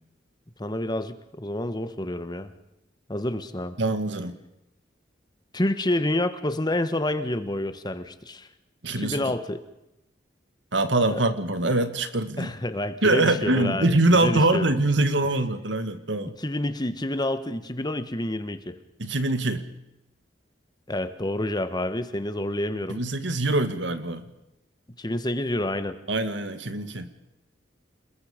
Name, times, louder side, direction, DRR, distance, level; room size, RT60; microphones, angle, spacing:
voice 1, 0.6-2.5 3.1-3.8 5.5-8.5 9.0-9.6 11.1-11.2 12.4-14.7 16.4-18.8 20.9-23.0 25.0-25.9, left 1 dB, 20° left, 11 dB, 1.3 m, -28 dB
voice 2, 3.8-4.3 8.8-9.3 10.7-12.5 13.0-16.3 19.0-19.6 22.9-24.2 26.1-27.1, right 2 dB, 75° right, 10 dB, 2.0 m, -23 dB
28.5 x 21.0 x 5.2 m, 0.89 s
head